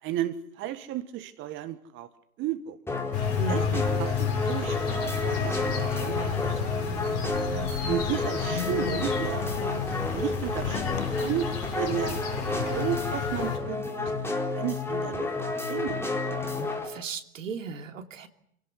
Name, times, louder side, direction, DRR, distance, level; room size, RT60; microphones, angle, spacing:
voice 1, 0.0-2.1 2.4-2.8 3.5-7.1 7.9-12.2 12.6-14.1 14.5-15.3 15.7-16.0, right 11 dB, 25° right, 12 dB, 1.5 m, -34 dB
sound 1, 2.9-16.9, left 3 dB, 5° left, 4.5 m, -31 dB
sound 2, 3.1-13.6, left 6 dB, 35° left, 6.7 m, -32 dB
voice 2, 3.4-3.7 7.5-8.0 16.8-18.3, right 6 dB, 60° right, 8 dB, 3.2 m, -36 dB
Wind, 5.6-11.1, left 7 dB, 75° left, 1.6 m, -37 dB
28.0 x 17.5 x 9.8 m, 0.72 s
figure-of-eight pair, 110°, 43 cm